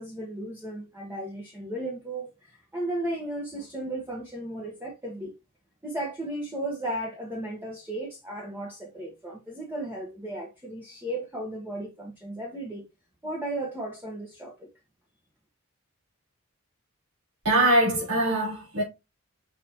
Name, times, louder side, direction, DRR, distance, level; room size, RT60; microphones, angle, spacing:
voice 1, 0.0-5.3 5.8-12.8 13.2-14.7, right 1 dB, 10° right, 1.2 m, -35 dB
voice 2, 17.4-18.8, right 1 dB, 75° right, 3.8 m, -22 dB
6.6 x 5.0 x 2.8 m
head